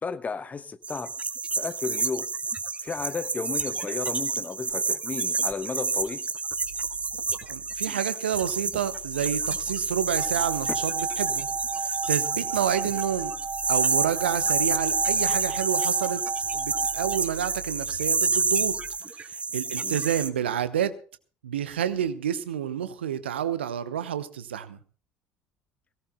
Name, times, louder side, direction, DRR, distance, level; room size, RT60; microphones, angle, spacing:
voice 1, 0.0-1.1 1.6-2.3 2.8-6.3 19.8-20.0, left 5 dB, 25° left, 12 dB, 1.1 m, -33 dB
sound 1, 0.8-20.3, right 4 dB, 20° right, 1.1 m, -29 dB
sound 2, 6.6-7.9 8.3-18.9, left 1 dB, 85° left, 1.2 m, -47 dB
voice 2, 7.4-11.5 11.8-13.3 13.7-16.2 16.5-18.8 19.2-20.9 21.4-24.8, right 9 dB, 75° right, 13 dB, 0.9 m, -29 dB
sound 3, 10.2-17.2, right 5 dB, 40° right, 1.8 m, -35 dB
22.5 x 17.5 x 2.2 m, 0.41 s
figure-of-eight pair, 60°, 6 cm